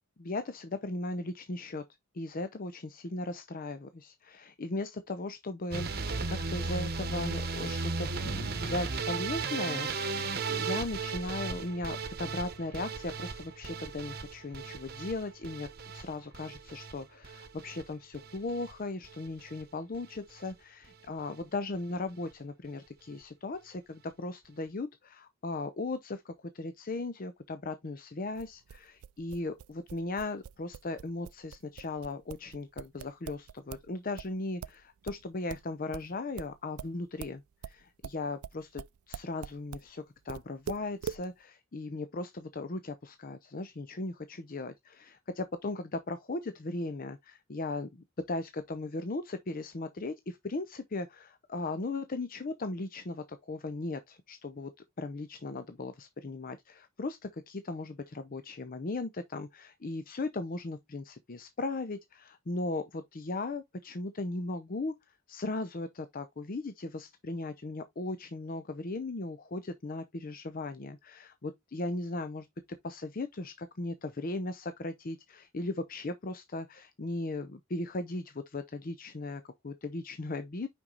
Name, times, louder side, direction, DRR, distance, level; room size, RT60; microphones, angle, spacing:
voice 1, 0.2-1.8 2.1-15.7 15.9-54.7 55.0-64.9 65.3-72.5 72.8-80.7, left 2 dB, 40° left, 0.6 m, -37 dB
sound 1, 5.7-17.8 18.1-18.7 19.0-19.6 19.9-20.2 20.5-20.6 20.8-20.9, right 4 dB, 45° right, 1.1 m, -36 dB
sound 2, 28.4-33.9 34.2-39.9 40.3-41.3, right 7 dB, 80° right, 0.4 m, -43 dB
5.9 x 5.2 x 3.9 m
head